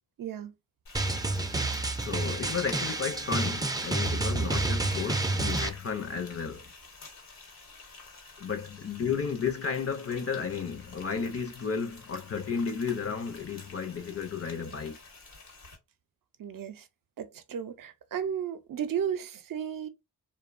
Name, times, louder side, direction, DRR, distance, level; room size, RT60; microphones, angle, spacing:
voice 1, 0.2-0.5 16.4-16.8 17.2-19.9, right 8 dB, 70° right, 0.5 m, -34 dB
Frying (food), 0.9-15.8, left 3 dB, 80° left, 1.0 m, -50 dB
Drum, 0.9-5.7, right 2 dB, 10° right, 0.3 m, -29 dB
voice 2, 2.0-6.7 8.4-15.0, left 6 dB, 40° left, 0.5 m, -33 dB
2.7 x 2.1 x 2.4 m
cardioid pair, 60°, 35 cm